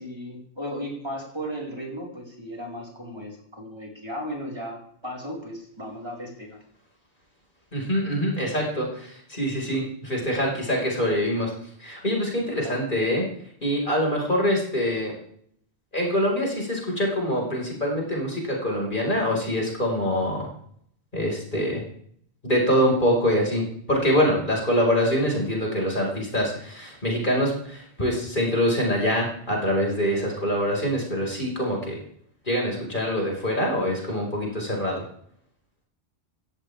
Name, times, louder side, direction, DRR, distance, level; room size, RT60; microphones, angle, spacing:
voice 1, 0.0-6.6 12.4-12.8, equal, 25° right, -2 dB, 4.6 m, -36 dB
voice 2, 7.7-11.5 11.8-13.3 13.6-15.1 15.9-20.5 21.1-21.8 22.4-23.6 23.9-32.0 32.5-35.0, equal, 45° left, -1 dB, 5.5 m, -24 dB
16.0 x 15.5 x 3.5 m, 0.63 s
omnidirectional pair, 1.1 m